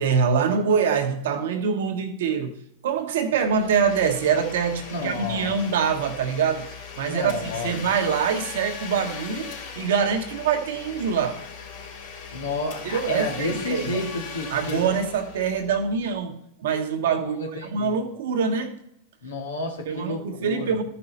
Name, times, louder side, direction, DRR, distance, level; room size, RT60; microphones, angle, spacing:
voice 1, 0.0-2.5 2.8-6.7 7.0-11.4 12.8-14.0 14.5-16.3 16.6-17.4 17.7-18.8 19.9-20.8, right 6 dB, 70° right, 1.2 m, -24 dB
Domestic sounds home sounds, 3.4-16.0, left 6 dB, 70° left, 3.1 m, -39 dB
voice 2, 4.9-5.5 7.1-7.8 12.3-14.9 17.2-17.9 19.2-20.8, left 2 dB, 85° left, 2.2 m, -31 dB
13.5 x 5.6 x 4.2 m
hypercardioid pair, 95°, 0 cm